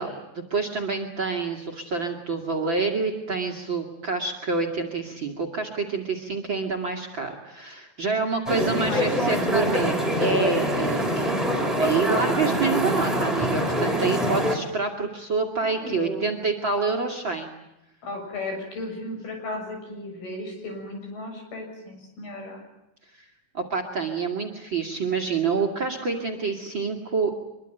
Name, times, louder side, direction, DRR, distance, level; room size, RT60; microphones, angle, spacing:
voice 1, 0.0-11.4 11.8-17.5 23.5-27.4, right 4 dB, 35° right, 7 dB, 2.5 m, -27 dB
sound 1, 8.5-14.6, equal, ahead, 4.1 m, -24 dB
voice 2, 8.8-9.8 15.6-16.3 18.0-22.6, left 2 dB, 75° left, 4 dB, 8.8 m, -35 dB
24.5 x 23.0 x 9.1 m, 0.90 s
omnidirectional pair, 4.5 m